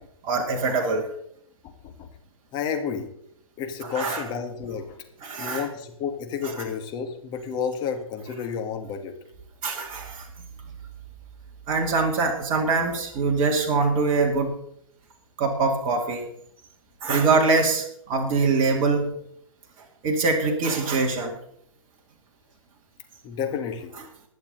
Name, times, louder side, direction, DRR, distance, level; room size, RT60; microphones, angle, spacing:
voice 1, 0.2-1.1 3.8-4.2 5.2-5.6 6.4-6.6 9.6-10.3 11.7-14.6 15.4-16.3 17.0-19.1 20.0-21.3, right 3 dB, 30° right, 1 dB, 2.2 m, -23 dB
voice 2, 2.5-3.1 3.6-5.0 5.4-9.1 23.2-23.9, left 6 dB, 25° left, 5 dB, 1.9 m, -31 dB
21.0 x 7.4 x 4.0 m, 0.71 s
figure-of-eight pair, 125°, 17 cm